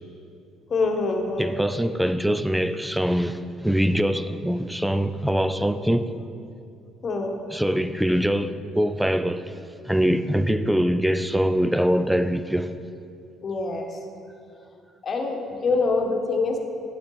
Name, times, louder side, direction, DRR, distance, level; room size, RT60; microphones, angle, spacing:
voice 1, 0.7-1.5 7.0-7.4 13.4-13.9 15.0-16.6, left 3 dB, 45° left, 1.1 m, -25 dB
voice 2, 1.4-6.1 7.5-9.5 9.8-12.7, equal, 5° right, 0.4 m, -23 dB
8.6 x 7.0 x 3.9 m
supercardioid pair, 80°, 0 cm